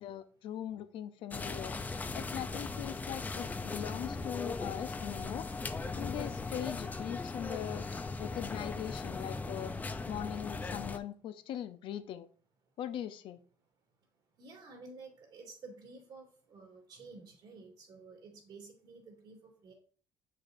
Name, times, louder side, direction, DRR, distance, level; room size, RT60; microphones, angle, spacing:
voice 1, 0.0-1.7 2.1-5.5 5.9-7.8 8.2-9.7 10.1-12.3 12.8-13.4, left 10 dB, 70° left, 11 dB, 0.6 m, -40 dB
sound 1, 1.3-11.0, left 3 dB, 20° left, 0.5 m, -38 dB
voice 2, 14.4-19.7, right 3 dB, 55° right, 0 dB, 2.7 m, -52 dB
7.3 x 6.6 x 2.6 m, 0.42 s
cardioid pair, 125°, 9 cm